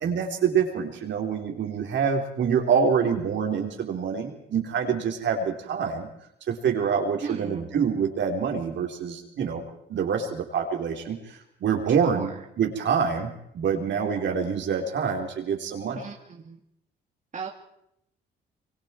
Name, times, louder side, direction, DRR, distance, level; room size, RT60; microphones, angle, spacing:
voice 1, 0.0-6.1 6.5-9.6 9.9-16.0, right 6 dB, 65° right, 2 dB, 4.2 m, -26 dB
voice 2, 7.2-7.7 12.1-12.3 16.0-16.6 17.3-17.5, right 5 dB, 40° right, 1 dB, 2.4 m, -36 dB
24.5 x 24.5 x 4.6 m, 0.77 s
cardioid pair, 90°, 20 cm